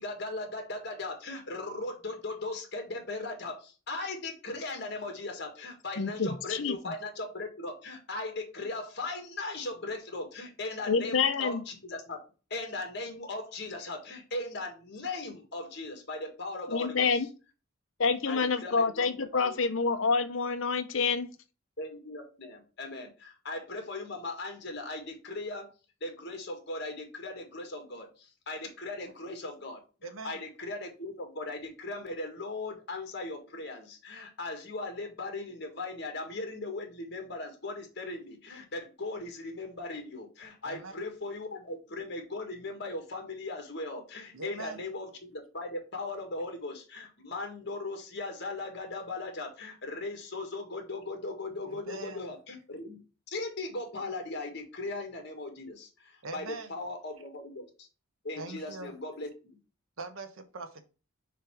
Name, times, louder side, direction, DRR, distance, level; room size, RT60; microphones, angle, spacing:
voice 1, 0.0-12.2 12.5-17.2 18.3-19.6 21.8-25.7 26.0-29.8 30.2-53.0 53.3-57.9 58.2-59.3, left 2 dB, 55° left, 1.7 m, -38 dB
voice 2, 6.0-6.9 10.9-11.6 16.7-17.3 18.0-21.3, left 5 dB, 70° left, 0.7 m, -28 dB
voice 3, 30.0-30.4 40.6-41.0 44.3-44.8 51.7-52.3 56.2-56.8 58.4-58.9 60.0-60.8, right 3 dB, 80° right, 1.0 m, -42 dB
6.8 x 3.3 x 4.6 m
head